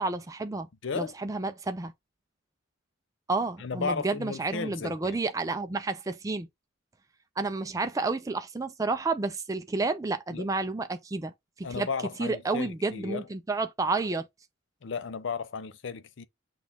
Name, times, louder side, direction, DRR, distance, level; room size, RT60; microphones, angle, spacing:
voice 1, 0.0-0.7 0.9-1.9 3.3-6.5 7.4-11.3 11.6-11.9 12.2-14.2, right 3 dB, 15° right, 0.3 m, -30 dB
voice 2, 0.8-1.1 3.6-5.2 10.3-10.5 11.6-13.3 14.8-16.2, left 5 dB, 65° left, 0.5 m, -34 dB
6.1 x 2.4 x 3.5 m
head